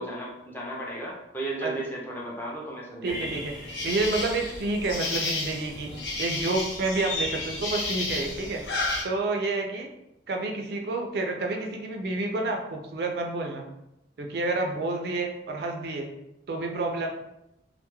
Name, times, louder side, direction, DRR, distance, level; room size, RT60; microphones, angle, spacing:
voice 1, 0.0-3.3, right 1 dB, 10° left, -3 dB, 0.4 m, -35 dB
sound 1, 3.0-9.0, left 2 dB, 75° left, 0.6 m, -32 dB
voice 2, 3.0-3.5 3.8-5.9 6.2-8.6 9.0-9.9 10.3-13.7 14.2-16.1 16.5-17.1, right 2 dB, 60° right, 3 dB, 0.3 m, -29 dB
2.2 x 2.0 x 2.9 m, 0.86 s
head